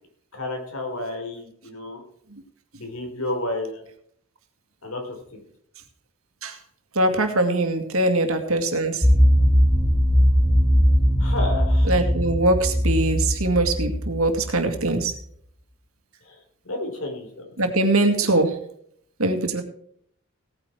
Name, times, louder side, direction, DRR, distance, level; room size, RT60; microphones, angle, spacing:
voice 1, 0.3-2.0 2.7-3.8 4.8-5.4 11.2-11.9 16.2-16.4 16.6-17.5 18.0-18.2, left 1 dB, 85° left, 3 dB, 4.1 m, -31 dB
voice 2, 6.9-9.1 11.9-15.1 17.6-18.5 19.2-19.6, right 2 dB, 85° right, 7 dB, 2.2 m, -22 dB
sound 1, 9.0-14.8, equal, ahead, 1.3 m, -19 dB
17.5 x 9.4 x 4.6 m, 0.66 s
head